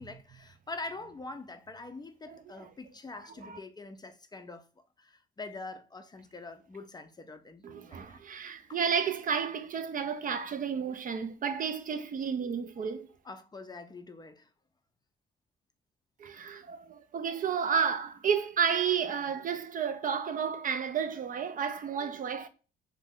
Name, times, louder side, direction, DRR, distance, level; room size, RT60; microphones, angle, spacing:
voice 1, 0.0-4.6 5.0-8.2 8.7-8.8 13.2-14.5, left 3 dB, 20° left, 0.4 m, -44 dB
voice 2, 7.6-13.1 16.2-22.5, right 7 dB, 45° right, 0.4 m, -31 dB
2.4 x 2.2 x 3.5 m
cardioid pair, 90°, 20 cm